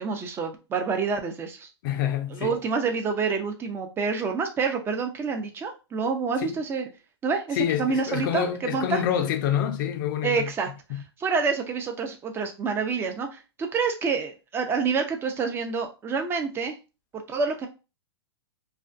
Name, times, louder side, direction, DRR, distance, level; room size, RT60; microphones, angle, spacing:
voice 1, 0.0-1.7 2.3-6.9 7.2-9.0 10.2-16.8 17.1-17.7, right 5 dB, 15° right, 0.4 m, -28 dB
voice 2, 1.8-2.5 6.4-6.6 7.6-10.5 10.9-11.0, left 9 dB, 50° left, 0.4 m, -27 dB
2.3 x 2.2 x 2.4 m
hypercardioid pair, 130°, 14 cm